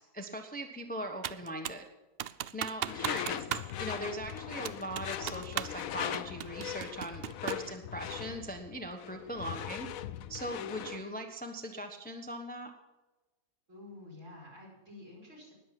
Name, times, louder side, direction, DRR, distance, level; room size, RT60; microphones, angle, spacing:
voice 1, 0.0-1.8 2.5-3.4 3.8-9.9 10.3-12.7, right 1 dB, 5° left, 4 dB, 1.0 m, -40 dB
Computer keyboard, 1.2-1.9 2.2-3.7 4.0-4.1 4.6-5.8 6.1-7.7, right 10 dB, 80° right, 0.5 m, -37 dB
Door / Screech, 2.8-11.1, left 11 dB, 70° left, 1.0 m, -40 dB
voice 2, 3.0-3.6 13.7-15.5, left 2 dB, 50° right, -3 dB, 5.8 m, -51 dB
20.0 x 7.8 x 5.9 m, 1.1 s
omnidirectional pair, 1.6 m